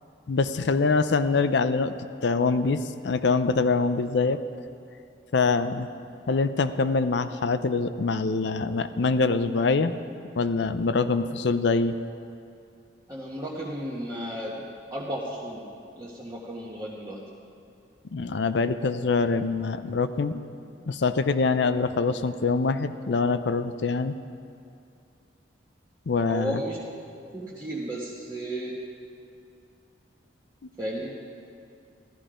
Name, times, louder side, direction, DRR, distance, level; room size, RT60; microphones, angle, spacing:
voice 1, 0.3-1.9 2.2-4.4 5.3-5.9 6.3-9.9 10.4-12.0 18.1-20.4 20.9-24.1 26.1-26.6, left 4 dB, 70° left, 11 dB, 0.5 m, -24 dB
voice 2, 13.1-15.6 15.9-17.2 26.3-26.8 27.3-28.8 30.8-31.1, right 1 dB, 20° right, -7 dB, 1.3 m, -34 dB
14.5 x 12.5 x 5.0 m, 2.4 s
head